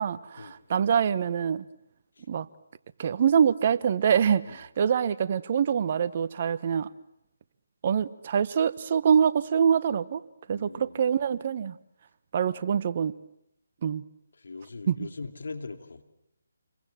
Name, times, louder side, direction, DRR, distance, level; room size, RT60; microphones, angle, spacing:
voice 1, 0.0-1.6 2.3-2.5 3.0-6.9 7.8-10.2 10.5-11.8 12.3-13.1 13.8-14.0 14.9-15.1, right 7 dB, 40° right, 15 dB, 1.0 m, -25 dB
voice 2, 10.5-11.0 14.4-16.0, left 3 dB, 65° left, 7 dB, 2.8 m, -40 dB
29.0 x 23.0 x 7.6 m, 0.82 s
figure-of-eight pair, 150°, 0 cm